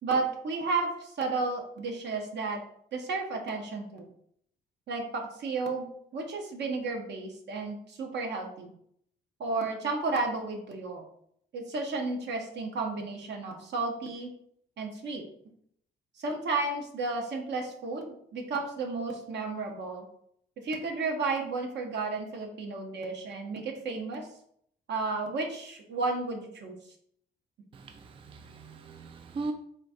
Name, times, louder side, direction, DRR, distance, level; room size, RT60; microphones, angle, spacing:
voice 1, 0.0-2.6 2.9-4.1 4.9-8.7 9.4-11.0 11.5-14.3 14.8-15.2 16.2-20.0 20.6-24.3 24.9-26.7, right 3 dB, 60° right, 2 dB, 1.0 m, -32 dB
voice 2, 27.7-29.5, right 3 dB, 25° right, 6 dB, 0.4 m, -39 dB
4.0 x 2.4 x 4.2 m, 0.69 s
cardioid pair, 90°, 20 cm